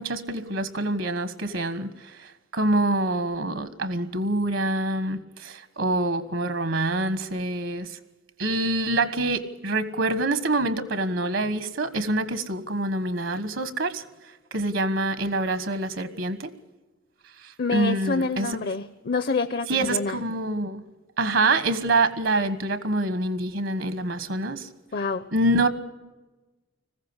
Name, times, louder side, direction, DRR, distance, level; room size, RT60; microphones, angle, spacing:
voice 1, 0.0-1.9 2.5-8.0 8.4-14.0 14.5-16.5 17.7-18.5 19.7-20.8 21.2-24.7 25.3-25.7, right 2 dB, 75° right, 1.4 m, -26 dB
voice 2, 17.6-20.2 24.9-25.3, left 4 dB, 50° left, 0.7 m, -27 dB
20.5 x 15.5 x 9.7 m
head